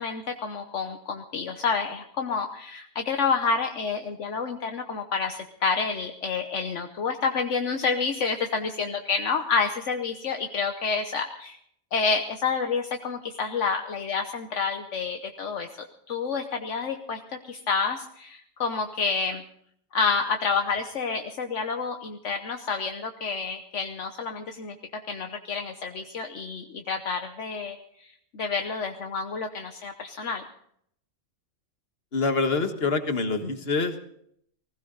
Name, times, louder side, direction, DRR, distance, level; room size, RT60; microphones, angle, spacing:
voice 1, 0.0-11.6 11.9-15.7 16.1-19.4 19.9-24.7 25.1-27.8 28.0-30.4, left 5 dB, 70° left, 5 dB, 1.3 m, -29 dB
voice 2, 32.1-34.0, left 3 dB, 50° left, 7 dB, 1.8 m, -25 dB
19.5 x 16.5 x 4.0 m, 0.69 s
omnidirectional pair, 1.3 m